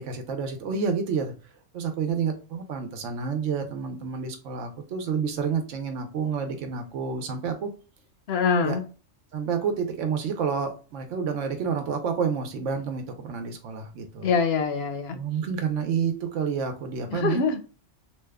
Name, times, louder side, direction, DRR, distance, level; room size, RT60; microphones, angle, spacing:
voice 1, 0.0-1.3 1.7-7.7 8.6-8.8 9.3-14.3 15.1-17.4, right 6 dB, 85° right, 6 dB, 1.0 m, -29 dB
voice 2, 8.3-8.9 14.2-15.2 17.1-17.6, left 5 dB, 65° left, 7 dB, 0.7 m, -24 dB
2.9 x 2.2 x 3.4 m, 0.36 s
omnidirectional pair, 1.3 m